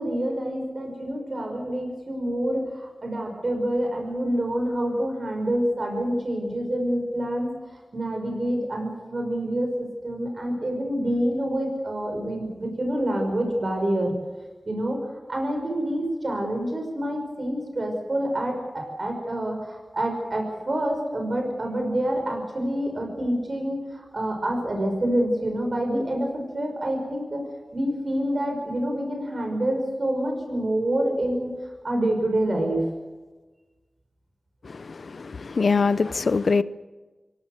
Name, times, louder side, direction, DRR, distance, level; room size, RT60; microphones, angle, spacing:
voice 1, 0.0-7.5 7.9-14.1 14.7-15.0 15.3-27.4 27.7-31.5 31.8-32.8, right 1 dB, 50° right, 5.8 m, -27 dB
voice 2, 34.7-36.6, left 4 dB, 75° left, 0.8 m, -23 dB
26.5 x 17.0 x 8.0 m
wide cardioid pair, 95°, 0 cm